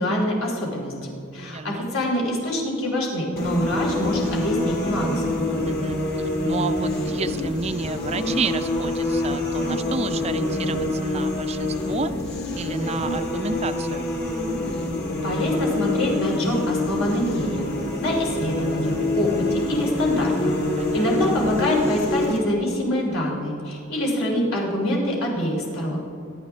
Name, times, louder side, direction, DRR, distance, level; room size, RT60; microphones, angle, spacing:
voice 1, 0.0-5.3 15.2-17.6 18.0-20.3 20.9-26.0, left 1 dB, 70° left, -2 dB, 3.1 m, -25 dB
voice 2, 1.4-1.9 5.6-6.0 6.4-12.1 12.6-14.1 20.8-21.4, right 4 dB, 30° right, 10 dB, 0.4 m, -30 dB
sound 1, 3.4-22.4, left 2 dB, 45° left, 2.1 m, -26 dB
22.0 x 11.5 x 3.4 m, 2.7 s
head